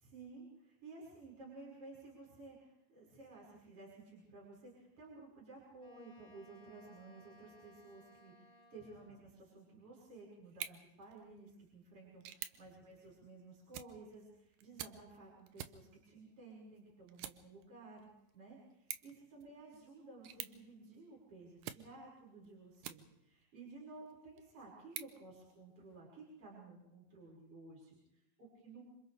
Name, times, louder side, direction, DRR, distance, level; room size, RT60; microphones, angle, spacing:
voice 1, 0.0-18.1 18.3-28.8, right 3 dB, 35° right, -5 dB, 6.8 m, -55 dB
Wind instrument woodwind instrument, 5.8-9.3, left 1 dB, 5° right, 2.3 m, -63 dB
sound 1, 10.4-23.4 23.9-26.0, right 11 dB, 75° right, 2.4 m, -52 dB
28.0 x 26.5 x 3.5 m, 0.83 s
omnidirectional pair, 4.3 m